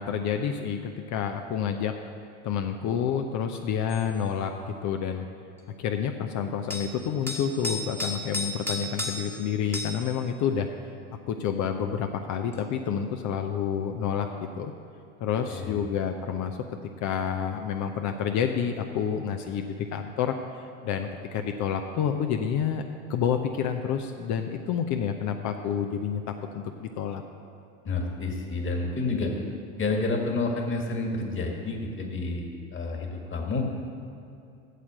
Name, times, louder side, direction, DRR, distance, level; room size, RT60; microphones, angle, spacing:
voice 1, 0.0-1.9 2.4-4.5 4.8-5.3 5.8-10.7 11.3-14.7 15.2-16.6 17.0-22.8 23.1-27.2, left 7 dB, 45° left, 5 dB, 0.7 m, -29 dB
sound 1, 3.9-4.1 6.7-6.9 7.3-9.4 9.7-10.0 12.5-12.6, left 1 dB, 5° left, 1.3 m, -33 dB
voice 2, 15.5-15.9 27.8-29.4 29.8-32.5 32.7-33.7, left 3 dB, 30° left, 2 dB, 1.9 m, -29 dB
8.3 x 7.3 x 7.7 m, 2.5 s
hypercardioid pair, 80°, 41 cm